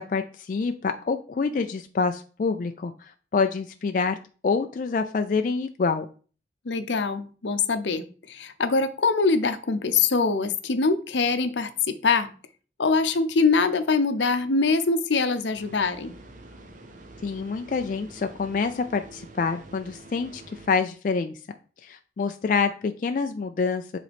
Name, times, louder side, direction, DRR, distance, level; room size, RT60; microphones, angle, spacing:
voice 1, 0.0-2.9 3.3-4.2 4.4-6.1 17.2-20.4 20.7-21.4 21.8-24.0, left 4 dB, 45° left, 7 dB, 0.3 m, -26 dB
voice 2, 6.6-12.3 12.8-16.1, left 4 dB, 80° left, 10 dB, 0.6 m, -23 dB
sound 1, 15.5-20.7, right 2 dB, 45° right, 0.7 m, -47 dB
7.5 x 3.9 x 3.4 m, 0.39 s
head